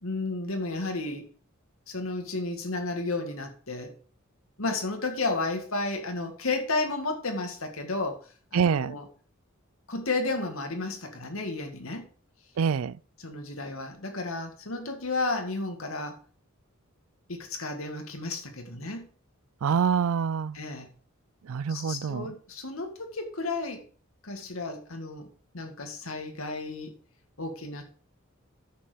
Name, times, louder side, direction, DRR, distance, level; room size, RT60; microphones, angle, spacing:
voice 1, 0.0-1.3 1.9-4.0 4.6-8.2 8.5-9.1 9.9-12.1 13.2-16.2 17.3-19.1 20.5-20.9 21.7-23.9 24.2-25.3 25.5-26.9 27.4-27.8, left 3 dB, 75° left, 2.0 m, -32 dB
voice 2, 8.5-9.0 12.6-13.0 19.6-20.6 21.4-22.3, right 7 dB, 80° right, 0.4 m, -26 dB
10.5 x 6.8 x 5.1 m
head